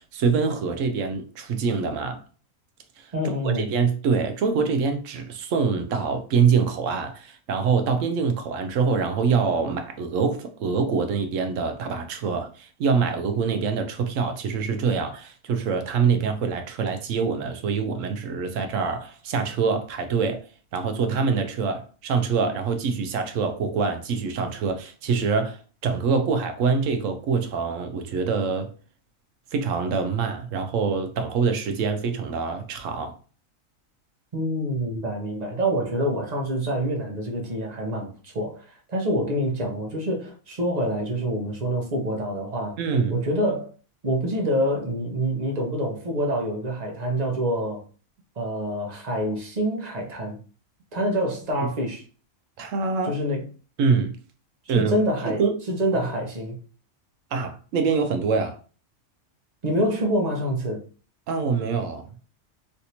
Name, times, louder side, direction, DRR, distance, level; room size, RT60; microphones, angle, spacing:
voice 1, 0.0-2.2 3.0-3.1 3.4-20.4 20.7-28.7 29.5-33.1 42.8-43.2 52.6-53.1 53.8-54.2 54.7-54.9 55.2-55.6 57.3-58.6 61.3-62.1, right 5 dB, 75° right, 0.9 m, -25 dB
voice 2, 3.1-3.7 34.3-42.8 43.1-43.7 44.0-47.9 48.4-50.4 50.9-52.0 53.0-53.4 54.6-55.4 55.7-56.6 59.6-60.8, equal, 40° right, 0.8 m, -26 dB
3.2 x 2.7 x 2.8 m
omnidirectional pair, 1.4 m